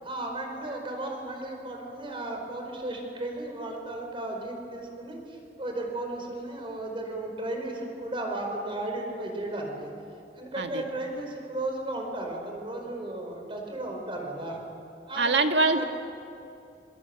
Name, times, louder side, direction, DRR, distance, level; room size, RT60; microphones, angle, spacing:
voice 1, 0.0-9.9 10.3-14.6 15.1-15.9, right 1 dB, 30° right, 2 dB, 5.1 m, -35 dB
voice 2, 15.2-15.8, right 3 dB, 80° right, 5 dB, 1.8 m, -24 dB
26.5 x 25.0 x 8.0 m, 2.6 s
head